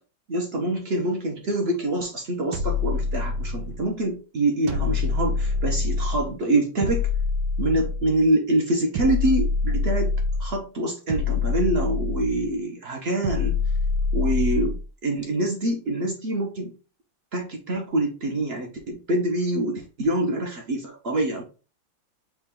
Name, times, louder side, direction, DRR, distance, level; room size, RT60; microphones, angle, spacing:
voice 1, 0.3-7.1 7.6-10.1 10.4-13.5 14.1-14.8 15.0-16.7 17.3-21.4, right 1 dB, 55° right, 1 dB, 0.7 m, -25 dB
sound 1, 2.5-3.8 4.7-6.3 6.8-8.2 8.9-10.6 11.1-12.5 13.2-14.8, left 4 dB, 80° right, 1.4 m, -25 dB
5.8 x 2.3 x 3.6 m, 0.35 s
omnidirectional pair, 2.1 m